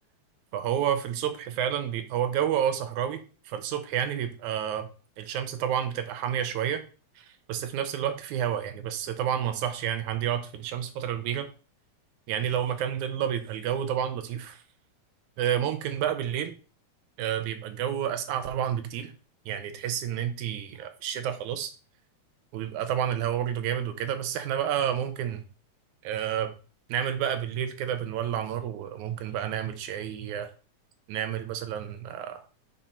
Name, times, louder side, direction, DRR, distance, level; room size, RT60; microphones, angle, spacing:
voice 1, 0.5-4.9 5.2-6.8 7.2-11.5 12.3-14.6 15.4-16.6 17.2-19.1 19.5-21.7 22.5-25.4 26.0-26.5 26.9-30.5 31.1-32.4, right 9 dB, 85° right, 9 dB, 2.3 m, -30 dB
5.5 x 5.2 x 4.3 m, 0.37 s
omnidirectional pair, 3.3 m